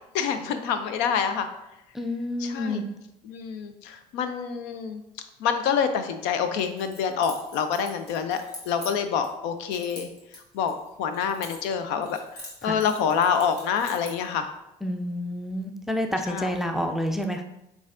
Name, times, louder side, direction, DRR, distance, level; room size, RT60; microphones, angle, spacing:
voice 1, 0.1-1.5 2.4-2.8 3.2-5.0 5.4-10.1 10.5-14.5 16.3-16.5, left 7 dB, 65° left, 9 dB, 0.5 m, -27 dB
voice 2, 1.9-2.8 12.6-12.8 14.8-17.4, left 1 dB, ahead, 5 dB, 0.4 m, -29 dB
Keys jangling, 6.6-9.3 9.7-11.8 12.0-14.3, left 1 dB, 85° left, 1.2 m, -44 dB
7.0 x 2.4 x 2.5 m, 0.87 s
hypercardioid pair, 65°, 20 cm